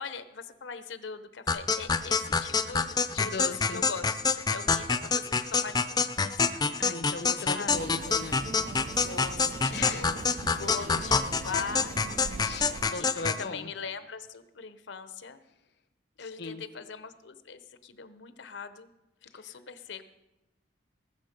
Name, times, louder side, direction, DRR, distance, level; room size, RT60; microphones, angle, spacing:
voice 1, 0.0-6.7 7.5-7.9 9.0-10.2 10.5-11.9 13.0-15.4 16.2-18.9 19.2-20.1, left 5 dB, 90° left, 11 dB, 0.9 m, -41 dB
sound 1, 1.5-13.4, left 5 dB, 20° left, 0.5 m, -27 dB
voice 2, 3.1-3.8 6.8-8.7 9.7-10.5 12.4-13.7 16.2-16.6 19.3-19.6, left 4 dB, 65° left, 9 dB, 0.7 m, -39 dB
sound 2, 7.7-12.9, right 4 dB, 45° right, 0.4 m, -41 dB
19.5 x 7.2 x 5.2 m, 0.98 s
head